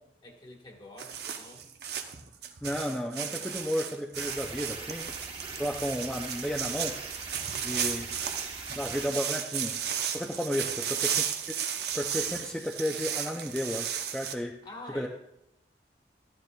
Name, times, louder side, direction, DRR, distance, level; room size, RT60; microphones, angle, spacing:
voice 1, 0.2-1.6 3.2-3.7 7.6-8.1 10.4-10.8 14.6-15.1, left 1 dB, 25° left, 1 dB, 1.4 m, -47 dB
sound 1, 1.0-14.3, right 8 dB, 70° right, 0.8 m, -34 dB
voice 2, 2.6-5.2 5.6-7.0 7.6-8.2 8.7-9.8 10.1-11.2 11.9-14.6 14.9-15.1, equal, 5° left, 0 dB, 0.4 m, -33 dB
sound 2, 4.1-9.1, right 4 dB, 30° right, 1.1 m, -42 dB
13.5 x 11.5 x 2.3 m, 0.84 s
head